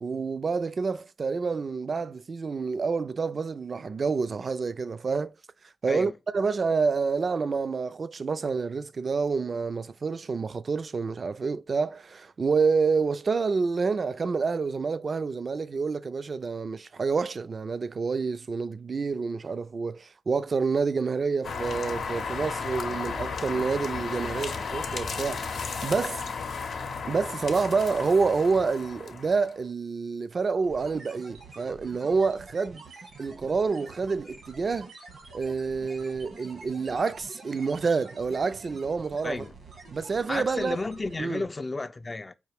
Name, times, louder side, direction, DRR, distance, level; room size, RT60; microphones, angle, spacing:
voice 1, 0.0-5.3 5.8-26.2 27.1-32.8 33.2-34.9 35.3-39.4 39.9-40.8 41.2-41.4, right 4 dB, 55° right, 0.3 m, -28 dB
sound 1, 21.4-29.6, left 5 dB, 85° left, 0.7 m, -34 dB
sound 2, 30.6-41.5, right 3 dB, 90° right, 1.3 m, -47 dB
voice 2, 39.2-39.5 40.3-42.3, left 3 dB, 35° left, 0.3 m, -32 dB
4.6 x 2.4 x 3.4 m
cardioid pair, 50°, 0 cm